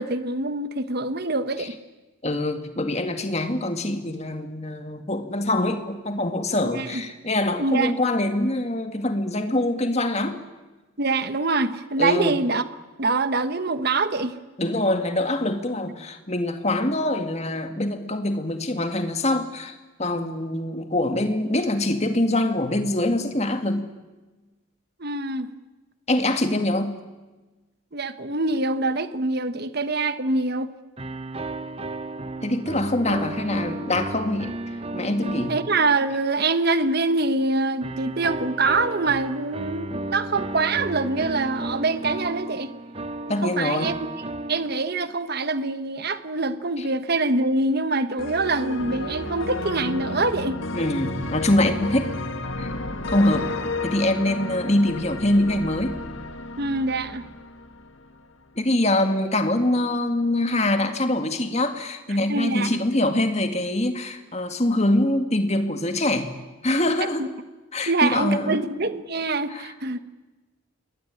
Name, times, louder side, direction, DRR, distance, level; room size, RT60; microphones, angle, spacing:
voice 1, 0.0-1.8 6.7-7.0 7.6-7.9 11.0-12.6 13.0-14.4 25.0-25.5 27.9-30.7 35.5-42.7 43.3-43.9 44.5-50.6 56.6-57.3 62.1-62.8 67.2-67.3 67.9-70.0, right 3 dB, 45° right, 1.2 m, -25 dB
voice 2, 2.2-10.4 12.0-12.4 14.6-23.9 26.1-27.0 32.4-34.5 34.9-35.5 43.3-43.9 50.7-52.1 52.6-52.7 53.1-53.5 53.8-56.0 58.6-66.4 66.6-67.3 67.7-68.6 69.5-69.7, left 1 dB, 30° left, 2.2 m, -24 dB
sound 1, 31.0-36.8 37.8-45.2, right 2 dB, 25° right, 0.9 m, -34 dB
sound 2, 48.2-58.2, left 2 dB, 65° left, 1.8 m, -32 dB
27.5 x 21.5 x 9.8 m
head